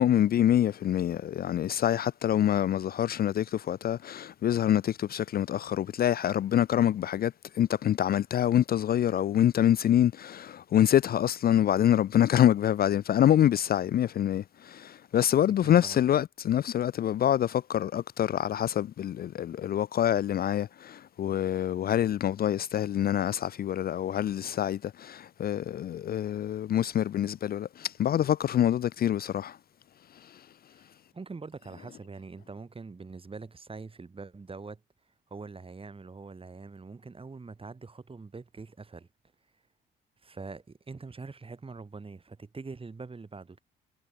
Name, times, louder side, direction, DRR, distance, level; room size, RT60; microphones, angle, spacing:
voice 1, 0.0-29.6 30.2-30.4, left 11 dB, 50° left, 0.5 m, -26 dB
voice 2, 15.4-16.0 30.7-30.9 31.1-34.8 35.3-39.1 40.2-43.6, right 4 dB, 25° right, 4.8 m, -44 dB
cardioid pair, 90°, 20 cm